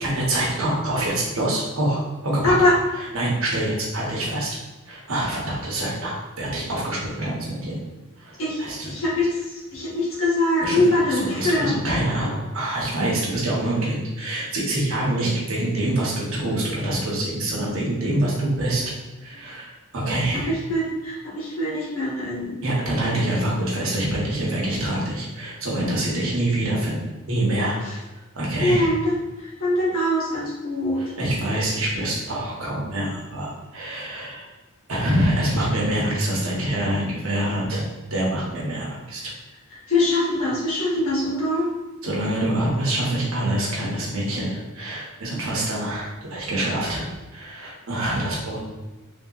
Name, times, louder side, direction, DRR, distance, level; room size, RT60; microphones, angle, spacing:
voice 1, 0.0-2.5 3.1-4.6 4.9-7.8 8.2-8.9 10.6-10.8 11.2-18.8 19.2-20.5 22.6-27.0 27.3-27.8 28.3-28.9 31.0-34.5 34.9-37.8 38.1-39.3 42.0-48.6, right 1 dB, 75° right, -4 dB, 0.9 m, -25 dB
voice 2, 2.4-2.8 8.4-11.8 20.5-22.6 27.8-28.0 28.6-29.1 29.4-31.0 39.2-39.3 39.9-41.7, left 1 dB, 75° left, -5 dB, 1.0 m, -23 dB
3.2 x 2.8 x 2.4 m, 1.2 s
head